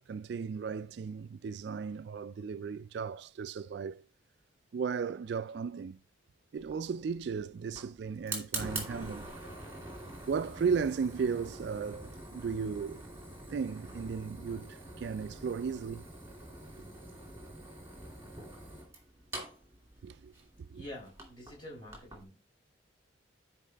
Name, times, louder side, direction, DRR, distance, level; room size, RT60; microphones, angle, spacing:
voice 1, 0.0-4.0 4.7-6.0 6.5-9.3 10.3-13.0 13.5-16.1 20.0-20.3 20.6-20.8, right 6 dB, 60° right, 0.3 m, -35 dB
Fire, 6.6-22.2, right 2 dB, 15° right, 2.5 m, -45 dB
voice 2, 20.7-22.4, left 1 dB, 25° left, 4.5 m, -47 dB
12.0 x 4.6 x 3.4 m
head